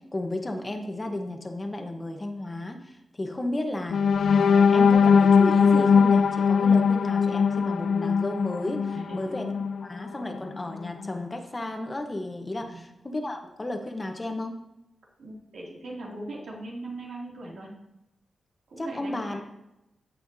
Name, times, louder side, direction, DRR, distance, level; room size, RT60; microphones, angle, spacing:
voice 1, 0.1-4.0 4.3-14.5 18.8-19.4, left 1 dB, 25° left, 4 dB, 1.0 m, -33 dB
sound 1, 3.9-9.8 10.3-10.5 10.9-11.1, left 6 dB, 75° left, 0.3 m, -20 dB
voice 2, 8.9-9.4 12.5-12.8 15.2-17.7 18.7-19.4, right 2 dB, 75° right, -3 dB, 2.6 m, -40 dB
15.0 x 5.6 x 2.7 m, 0.90 s
wide cardioid pair, 95°, 0 cm